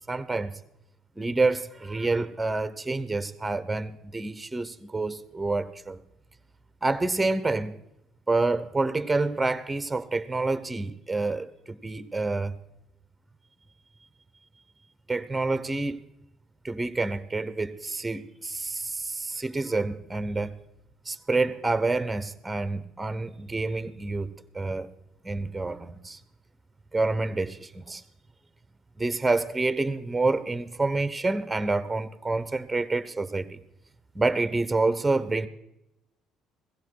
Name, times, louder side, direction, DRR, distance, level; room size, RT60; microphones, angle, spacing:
voice 1, 0.1-0.5 1.2-6.0 6.8-7.7 8.3-12.6 15.1-16.0 16.6-20.5 21.0-24.3 24.5-24.9 25.2-26.2 26.9-28.0 29.0-33.6 34.1-35.5, right 3 dB, 15° right, 1.1 m, -28 dB
17.0 x 15.0 x 4.8 m
cardioid pair, 90°, 0 cm